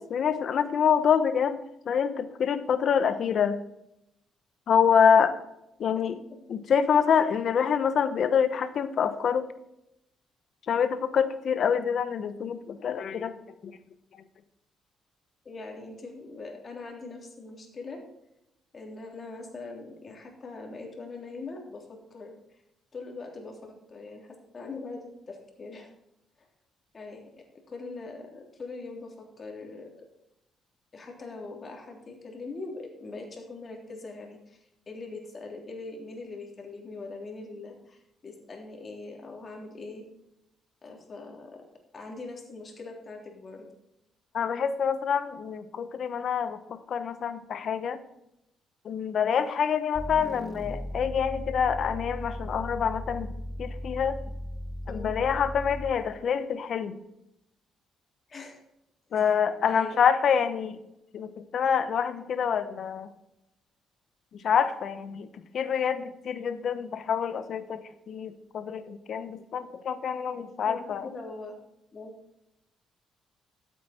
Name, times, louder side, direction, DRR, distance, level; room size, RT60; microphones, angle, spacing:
voice 1, 0.0-1.6 1.9-3.6 4.7-5.3 5.8-6.2 6.5-9.5 10.7-13.4 13.6-13.8 44.3-48.0 48.8-53.3 53.6-54.2 54.9-57.0 59.1-60.8 61.1-63.1 64.3-71.1, left 7 dB, 60° left, 12 dB, 1.0 m, -26 dB
voice 2, 15.4-18.0 18.7-22.6 22.9-25.9 26.9-27.2 27.7-29.9 30.9-40.0 40.8-41.6 41.9-43.7 54.8-55.1 58.3-58.6 59.2-59.3 59.7-60.0 70.4-71.5 71.9-72.1, left 3 dB, 40° left, 1 dB, 3.2 m, -42 dB
sound 1, 50.0-56.1, equal, 10° left, 1.0 m, -37 dB
13.5 x 8.3 x 4.4 m, 0.83 s
cardioid pair, 90°, 0 cm